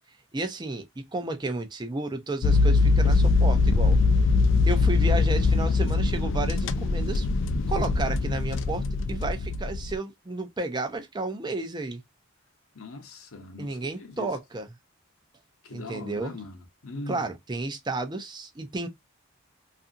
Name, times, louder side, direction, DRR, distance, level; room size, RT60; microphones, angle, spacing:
voice 1, 0.3-4.0 4.7-7.3 7.7-12.0 13.6-14.7 15.7-16.4 17.1-18.9, right 2 dB, 20° right, 0.4 m, -32 dB
sound 1, 2.4-10.0, left 3 dB, 55° left, 0.3 m, -22 dB
voice 2, 12.8-13.8 14.2-14.3 15.6-17.2, left 2 dB, 75° left, 0.8 m, -40 dB
2.6 x 2.5 x 2.4 m
head